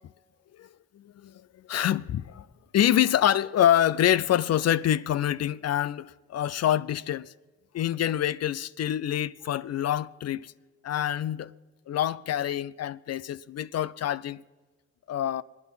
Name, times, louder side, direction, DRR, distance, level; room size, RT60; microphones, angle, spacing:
voice 1, 0.9-2.5 2.7-7.3 7.7-10.5 10.8-11.5 11.9-14.4 15.1-15.4, left 11 dB, 50° left, 0.5 m, -26 dB
24.0 x 9.6 x 5.5 m
hypercardioid pair, 45°, 32 cm